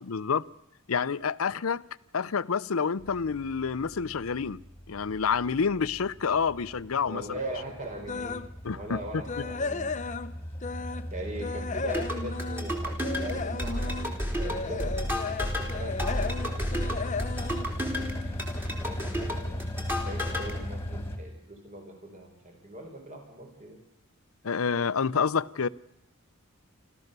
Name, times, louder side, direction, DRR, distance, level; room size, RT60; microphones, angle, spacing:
voice 1, 0.0-0.5 0.9-1.8 2.1-4.6 4.9-7.2 8.6-9.0 24.4-25.7, left 6 dB, 85° left, 0.6 m, -28 dB
sound 1, 3.0-21.2, equal, 10° left, 2.3 m, -37 dB
voice 2, 7.0-8.4 8.7-9.9 11.1-15.0 15.6-17.3 18.8-23.8, right 1 dB, 35° right, 4.3 m, -40 dB
sound 2, 8.1-8.5 8.9-11.1 11.4-18.6 19.0-19.2 19.7-19.8 20.2-20.3, left 4 dB, 35° left, 0.7 m, -35 dB
sound 3, 11.9-20.5, equal, 10° right, 3.4 m, -33 dB
28.5 x 13.5 x 6.8 m
head